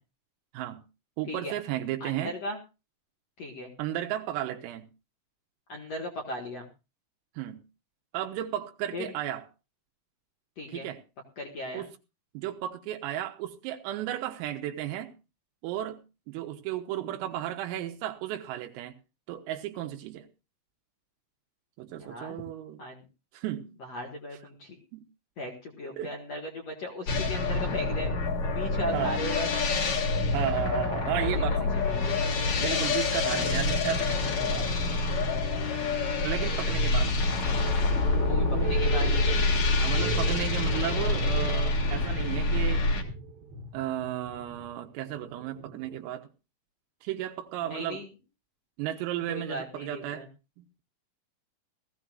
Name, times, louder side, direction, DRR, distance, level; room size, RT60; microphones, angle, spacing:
voice 1, 0.5-0.9 1.2-2.4 3.8-4.9 7.4-7.6 8.1-9.4 10.7-11.0 11.7-11.9 12.4-15.2 15.6-18.9 19.3-20.3 21.8-22.8 23.3-23.7 24.9-25.1 26.0-26.1 28.9-29.1 30.3-31.8 32.6-34.7 36.2-37.2 39.8-42.9 43.7-46.3 47.0-48.0 48.8-50.3 50.6-50.8, right 12 dB, 85° right, 4 dB, 3.6 m, -34 dB
voice 2, 2.0-2.6 3.4-3.7 5.7-6.7 8.9-9.0 10.6-10.9 11.4-11.9 22.0-22.4 22.8-23.0 23.8-24.8 25.4-28.1 28.4-29.5 31.1-32.2 38.2-39.1 47.7-48.1 49.3-50.3, left 1 dB, 75° left, 2 dB, 1.5 m, -37 dB
sound 1, 27.1-43.0, left 3 dB, 55° left, 2.0 m, -27 dB
sound 2, 37.3-46.0, right 9 dB, 70° right, 2.9 m, -40 dB
19.5 x 15.0 x 2.4 m, 0.29 s
omnidirectional pair, 5.9 m